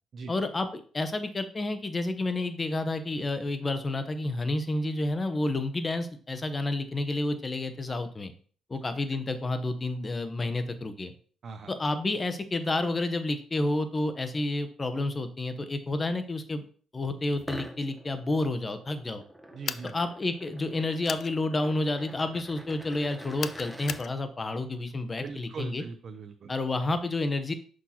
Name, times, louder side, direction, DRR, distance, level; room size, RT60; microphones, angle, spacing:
voice 1, 0.3-8.3 8.7-11.1 11.7-16.6 16.9-19.2 19.9-25.8 26.5-27.5, left 2 dB, 25° left, 9 dB, 0.9 m, -30 dB
sound 1, 17.4-24.0, equal, 5° right, 1.0 m, -46 dB
voice 2, 19.5-19.9 25.2-26.5, right 5 dB, 55° right, 7 dB, 0.5 m, -40 dB
sound 2, 19.6-19.9 21.0-21.3 23.4-24.1, left 8 dB, 60° left, 0.3 m, -35 dB
6.2 x 5.9 x 2.9 m, 0.44 s
cardioid pair, 90°, 0 cm